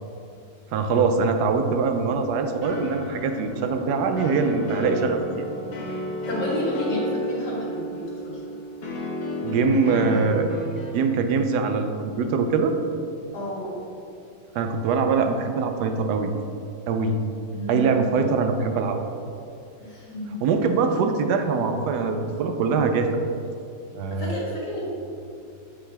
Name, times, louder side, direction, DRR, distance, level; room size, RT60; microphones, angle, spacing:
voice 1, 0.7-5.2 9.4-10.5 10.9-12.7 14.5-16.3 16.9-17.1 17.7-19.0 20.4-23.1 23.9-24.3, right 5 dB, 75° right, 6 dB, 1.1 m, -23 dB
sound 1, 2.6-10.9, left 1 dB, 60° left, 1.4 m, -32 dB
voice 2, 5.8-8.4 13.3-13.7 17.5-18.2 19.8-20.4 24.1-24.8, left 1 dB, 75° left, -6 dB, 2.4 m, -31 dB
7.7 x 5.6 x 3.4 m, 2.6 s
omnidirectional pair, 1.8 m